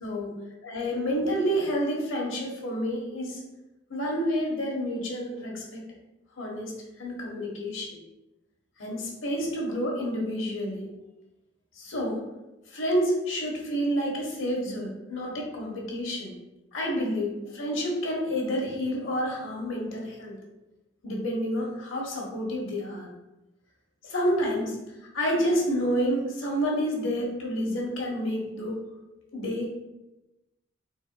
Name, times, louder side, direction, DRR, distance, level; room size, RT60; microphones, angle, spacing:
voice 1, 0.0-0.3 0.7-3.4 3.9-5.8 6.4-6.7 7.0-8.0 8.8-10.9 11.8-12.2 12.7-16.3 16.7-20.3 21.0-23.1 24.0-24.8 25.1-28.8 29.3-29.7, equal, 85° left, -1 dB, 1.1 m, -29 dB
5.5 x 3.8 x 2.2 m, 0.98 s
head